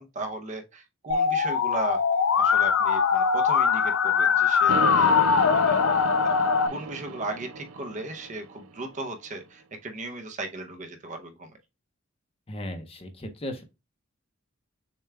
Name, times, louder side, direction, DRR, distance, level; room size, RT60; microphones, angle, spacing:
voice 1, 0.0-2.0 2.4-6.3 6.7-11.5, right 2 dB, 35° right, 0.6 m, -36 dB
Musical instrument, 1.1-6.7, left 6 dB, 70° left, 0.5 m, -22 dB
sound 1, 4.7-8.8, right 3 dB, 80° right, 0.5 m, -33 dB
voice 2, 12.5-13.6, left 1 dB, 30° left, 0.7 m, -36 dB
6.7 x 2.3 x 3.3 m
head